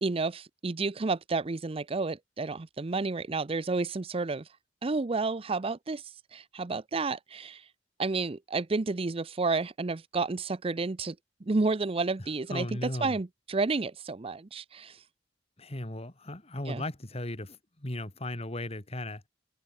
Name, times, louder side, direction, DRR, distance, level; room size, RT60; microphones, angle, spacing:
voice 1, 0.0-4.5 4.8-6.0 6.3-7.6 8.0-11.2 11.5-15.0 16.7-16.8, right 3 dB, 35° right, 0.6 m, -31 dB
voice 2, 12.2-13.2 15.6-19.2, left 1 dB, 35° left, 2.4 m, -37 dB
head